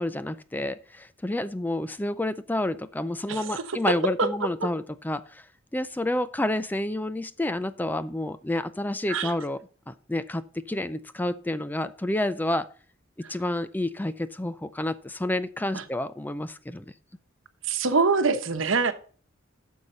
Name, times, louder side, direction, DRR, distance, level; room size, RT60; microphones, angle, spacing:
voice 1, 0.0-5.4 5.7-9.6 9.9-12.7 13.3-16.8, left 1 dB, 10° left, 0.4 m, -29 dB
voice 2, 3.3-3.8 4.2-4.3 4.6-4.7 9.1-9.3 15.7-15.8 17.6-18.9, right 4 dB, 80° right, 1.0 m, -24 dB
9.8 x 6.5 x 4.0 m
head